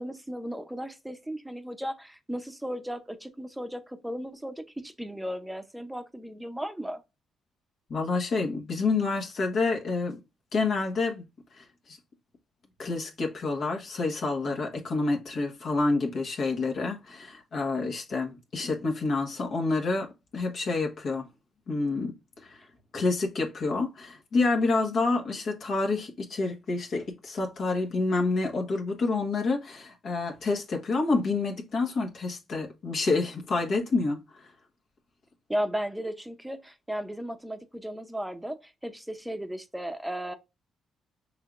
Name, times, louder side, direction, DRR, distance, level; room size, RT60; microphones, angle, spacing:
voice 1, 0.0-7.0 35.5-40.3, equal, 5° right, 0.7 m, -35 dB
voice 2, 7.9-10.2 10.5-11.2 11.6-12.0 12.8-21.3 21.7-22.1 22.4-22.6 22.9-34.2, left 3 dB, 60° left, 1.3 m, -28 dB
5.6 x 3.4 x 2.5 m
cardioid pair, 90°, 0 cm